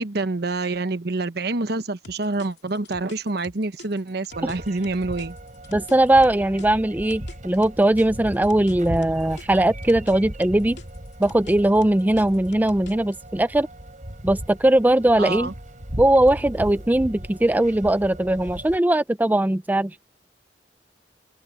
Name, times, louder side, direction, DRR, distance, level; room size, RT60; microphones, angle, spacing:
voice 1, 0.0-5.4 15.2-15.5, right 3 dB, 65° right, 1.0 m, -27 dB
sound 1, 2.0-6.7 7.1-10.2 10.4-13.1, left 2 dB, 75° left, 2.7 m, -44 dB
sound 2, 4.3-18.8, right 1 dB, 45° right, 5.1 m, -37 dB
voice 2, 5.7-10.8 11.2-13.7 14.2-15.5 16.0-19.9, right 1 dB, 10° right, 0.4 m, -20 dB
open air
head